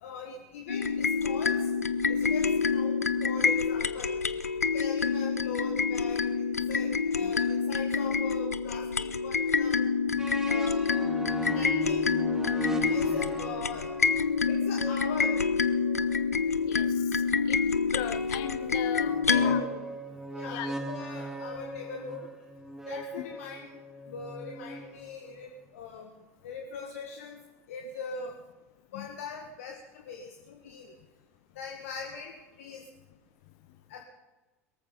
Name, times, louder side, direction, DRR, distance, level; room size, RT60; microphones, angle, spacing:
voice 1, 0.0-1.7 2.1-4.2 4.7-9.8 10.5-10.8 11.5-12.1 12.8-13.9 14.5-15.4 19.0-19.8 20.3-22.3 22.9-23.8 24.1-26.1 26.4-27.4 27.7-28.3 28.9-30.9 31.5-32.3 32.6-32.8 33.9-34.0, left 5 dB, 65° left, 1.7 m, -41 dB
sound 1, 0.7-19.6, left 5 dB, 80° left, 0.6 m, -27 dB
sound 2, 10.2-16.9 18.0-25.3, right 1 dB, 5° right, 1.5 m, -39 dB
voice 2, 16.6-17.2 17.5-17.7 17.9-19.6 20.5-20.7 23.2-23.3 28.9-29.1, left 15 dB, 50° left, 0.9 m, -38 dB
22.0 x 14.0 x 4.1 m
figure-of-eight pair, 75°, 8 cm